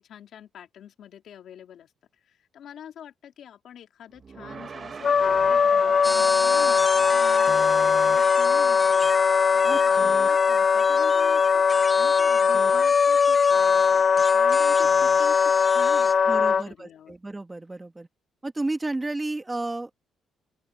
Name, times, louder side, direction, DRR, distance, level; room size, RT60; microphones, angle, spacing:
voice 1, 0.0-1.9 2.2-17.1, left 9 dB, 70° left, 3.0 m, -45 dB
sound 1, 4.1-11.1, right 5 dB, 40° right, 2.0 m, -40 dB
Wind instrument woodwind instrument, 5.0-16.6, left 6 dB, 45° left, 0.4 m, -20 dB
sound 2, 6.0-16.1, left 1 dB, 5° left, 1.3 m, -36 dB
voice 2, 9.6-10.2 16.3-18.1 18.4-20.1, right 2 dB, 15° right, 2.3 m, -32 dB
open air
cardioid pair, 90°, 0 cm